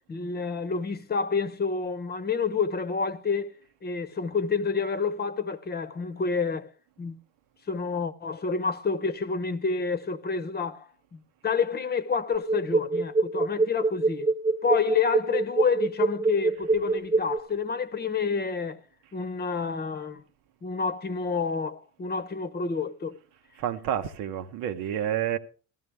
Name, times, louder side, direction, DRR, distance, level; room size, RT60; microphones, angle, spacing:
voice 1, 0.1-3.5 3.8-6.7 7.0-7.2 7.7-10.9 11.4-14.3 14.6-18.8 19.1-20.2 20.6-23.2, left 5 dB, 30° left, 0.8 m, -28 dB
sound 1, 12.3-17.4, right 3 dB, 20° right, 1.1 m, -24 dB
voice 2, 23.6-25.4, right 10 dB, 85° right, 1.0 m, -29 dB
15.0 x 13.0 x 3.4 m
cardioid pair, 100°, 33 cm